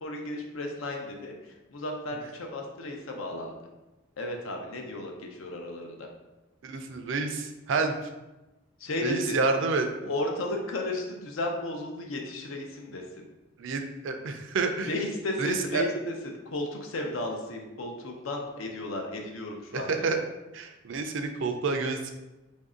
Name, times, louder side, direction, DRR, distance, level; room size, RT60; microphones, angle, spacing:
voice 1, 0.0-3.6 4.2-6.1 8.8-9.4 10.1-13.3 14.8-16.1 16.4-19.9, left 1 dB, 85° left, 2 dB, 0.6 m, -34 dB
voice 2, 6.6-7.9 9.0-10.1 13.6-14.9 15.4-15.8 19.7-20.2 20.5-22.1, right 4 dB, 70° right, 5 dB, 0.4 m, -29 dB
3.1 x 2.6 x 3.7 m, 1.0 s
head